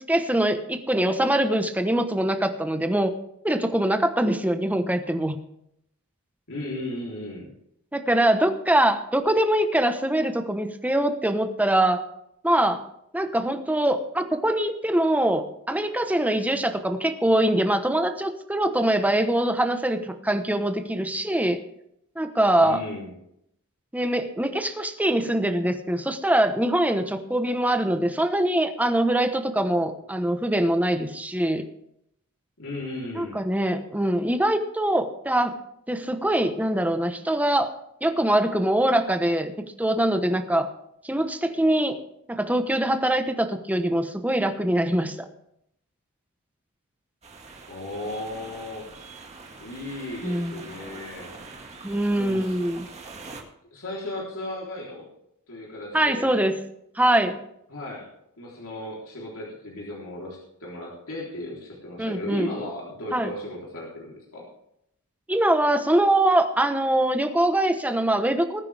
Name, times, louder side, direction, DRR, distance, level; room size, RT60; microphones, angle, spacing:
voice 1, 0.1-3.1 3.4-5.4 7.9-12.0 12.4-12.8 13.1-21.6 22.2-22.8 23.9-31.6 33.1-35.5 35.9-37.7 38.0-40.7 41.0-42.0 42.3-45.1 50.2-50.7 51.8-52.9 55.9-56.6 57.0-57.4 62.0-62.5 63.1-63.3 65.3-68.6, right 1 dB, 5° right, 7 dB, 1.1 m, -23 dB
voice 2, 6.5-7.5 22.6-23.1 32.6-33.4 47.7-48.9 49.6-51.3 52.1-52.6 53.7-55.1 55.5-56.3 57.7-58.1 58.4-64.4, left 1 dB, 65° left, -3 dB, 3.6 m, -36 dB
sound 1, 47.2-53.4, right 3 dB, 30° right, 2.0 m, -43 dB
20.0 x 9.5 x 3.5 m, 0.76 s
head